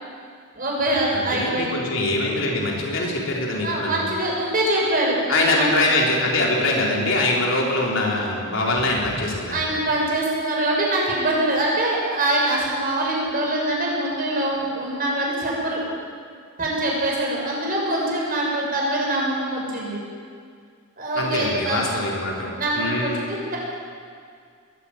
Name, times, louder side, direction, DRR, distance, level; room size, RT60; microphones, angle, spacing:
voice 1, 0.5-1.7 2.9-3.1 3.6-5.7 6.6-6.8 9.4-15.8 16.6-20.0 21.0-21.8 22.5-23.6, right 1 dB, 40° right, -3 dB, 6.6 m, -24 dB
voice 2, 1.1-4.1 5.3-9.5 21.1-23.2, left 2 dB, 60° left, -2 dB, 4.6 m, -23 dB
22.0 x 15.0 x 9.1 m, 2.2 s
head